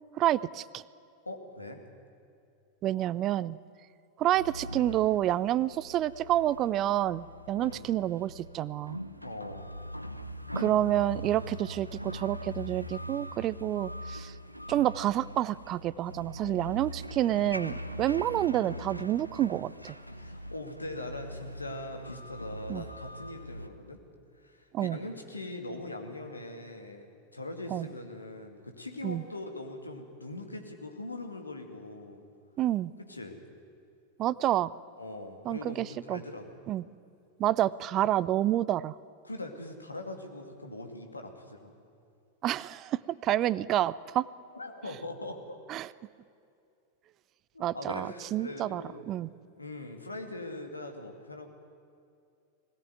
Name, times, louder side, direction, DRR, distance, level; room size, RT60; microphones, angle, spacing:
voice 1, 0.2-0.8 2.8-3.6 4.2-9.0 10.6-14.3 14.7-19.9 22.7-22.8 24.7-25.0 27.7-27.9 29.0-29.2 32.6-32.9 34.2-34.7 35.5-36.2 36.7-36.8 37.4-38.9 42.4-44.3 45.7-45.9 47.6-48.8 49.1-49.3, right 13 dB, 35° right, 21 dB, 0.5 m, -28 dB
voice 2, 1.2-1.8 7.7-7.9 9.2-9.6 20.1-24.0 24.4-27.1 27.3-32.2 33.0-33.4 35.0-36.6 39.2-41.7 44.5-45.6 47.5-49.1 49.6-51.5, left 2 dB, 80° left, 4 dB, 2.4 m, -41 dB
sound 1, 4.3-23.7, equal, 90° right, 0.8 m, -42 dB
21.0 x 17.5 x 9.3 m, 2.5 s
figure-of-eight pair, 90°, 0 cm